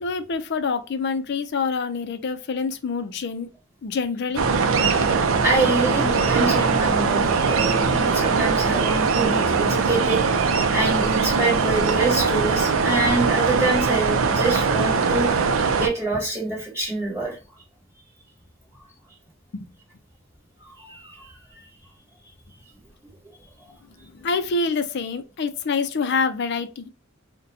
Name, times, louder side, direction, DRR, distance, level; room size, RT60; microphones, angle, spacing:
voice 1, 0.0-3.5 3.8-4.5 4.8-4.9 19.5-19.7 24.0-26.9, left 4 dB, 55° left, 0.4 m, -26 dB
sound 1, 4.4-15.9, right 5 dB, 70° right, 0.5 m, -21 dB
voice 2, 5.4-10.4 10.7-15.4 15.8-17.4 20.6-21.7, right 2 dB, 15° right, 1.2 m, -26 dB
3.9 x 2.2 x 2.7 m
head